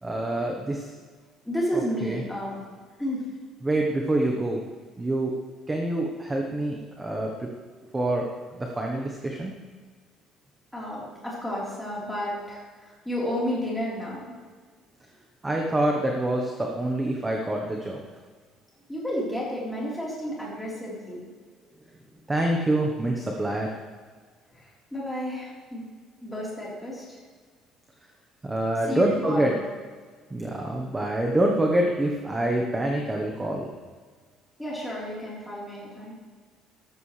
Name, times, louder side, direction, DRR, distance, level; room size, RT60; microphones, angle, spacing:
voice 1, 0.0-0.9 1.7-2.2 3.6-4.6 5.0-5.3 5.7-7.5 7.9-9.5 15.4-18.0 22.3-23.7 28.4-29.5 30.3-33.7, right 1 dB, 10° right, 0 dB, 1.1 m, -26 dB
voice 2, 1.4-2.7 3.0-3.3 10.7-14.4 18.9-21.3 24.5-25.8 26.2-27.2 28.9-29.6 34.6-36.1, equal, 5° left, -6 dB, 3.9 m, -32 dB
14.0 x 13.0 x 3.3 m, 1.6 s
cardioid pair, 175°, 0 cm